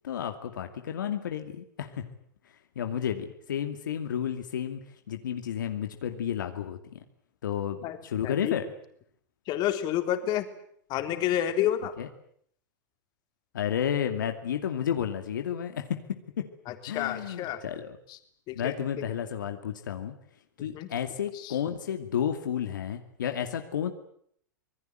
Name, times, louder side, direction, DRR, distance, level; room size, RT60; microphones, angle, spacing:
voice 1, 0.0-2.0 2.8-4.8 5.1-7.0 7.4-8.6 12.0-12.1 13.5-15.9 16.4-16.5 16.9-18.0 18.5-20.1 20.6-23.9, left 9 dB, 80° left, 6 dB, 2.5 m, -31 dB
voice 2, 8.2-8.6 9.5-10.5 10.9-11.9 16.7-17.6 18.1-18.2 18.5-18.7 20.6-20.9 21.3-21.5, left 11 dB, 45° left, 7 dB, 3.7 m, -29 dB
26.5 x 20.0 x 9.1 m, 0.66 s
hypercardioid pair, 110°, 10 cm